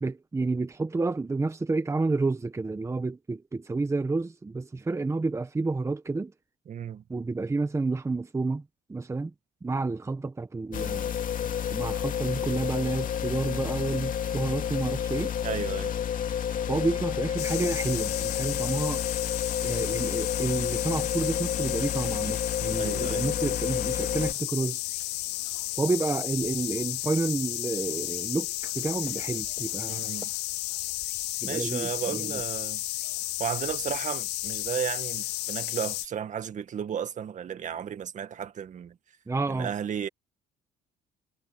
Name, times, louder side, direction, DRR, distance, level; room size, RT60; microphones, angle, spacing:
voice 1, 0.0-6.3 7.1-8.6 8.9-9.3 9.6-11.2 11.7-15.3 16.7-19.0 19.6-24.8 25.8-30.1 31.4-32.4 39.3-39.7, right 3 dB, 15° right, 1.3 m, -30 dB
voice 2, 6.7-7.0 15.4-15.9 22.8-23.4 29.9-30.3 31.5-32.8 33.4-39.0 39.5-40.1, right 8 dB, 45° right, 1.9 m, -34 dB
sound 1, 10.7-24.3, left 8 dB, 55° left, 2.5 m, -30 dB
sound 2, 17.4-36.1, left 19 dB, 85° left, 0.7 m, -33 dB
cardioid pair, 110°, 17 cm